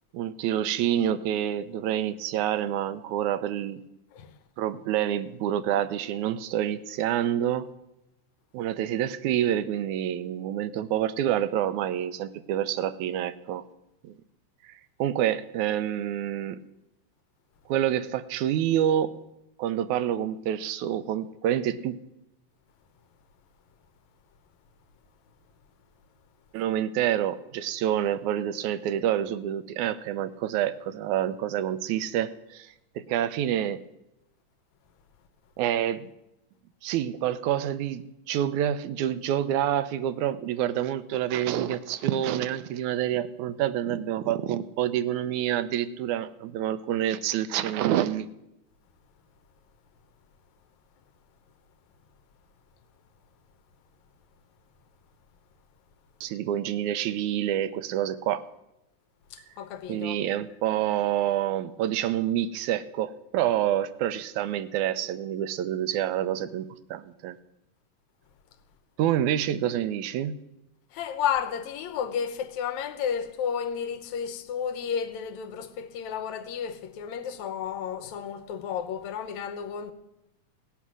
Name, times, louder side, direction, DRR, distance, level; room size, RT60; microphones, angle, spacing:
voice 1, 0.1-3.8 4.6-7.7 8.5-13.6 14.0-14.2 14.6-14.7 15.0-16.6 17.7-19.1 19.6-22.0 26.5-33.8 35.6-36.1 36.8-48.3 56.2-58.4 59.9-67.4 69.0-70.4, right 11 dB, 85° right, 2.1 m, -27 dB
voice 2, 59.3-60.2 70.9-79.9, left 8 dB, 75° left, 2.2 m, -32 dB
17.5 x 8.3 x 6.1 m
omnidirectional pair, 3.4 m